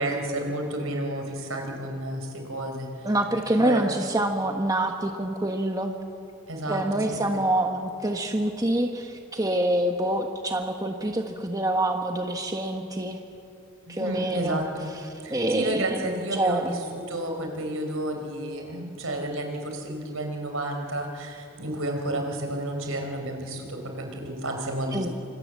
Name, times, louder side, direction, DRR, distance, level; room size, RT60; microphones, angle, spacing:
voice 1, 0.0-3.1 3.6-3.9 6.5-6.8 7.1-7.4 13.9-15.0 15.2-25.1, right 1 dB, 75° right, 4 dB, 4.5 m, -31 dB
voice 2, 3.0-5.9 6.7-13.2 13.9-14.6 15.3-16.8 24.9-25.1, right 1 dB, 15° right, 4 dB, 1.2 m, -26 dB
27.0 x 25.0 x 7.5 m, 2.8 s
head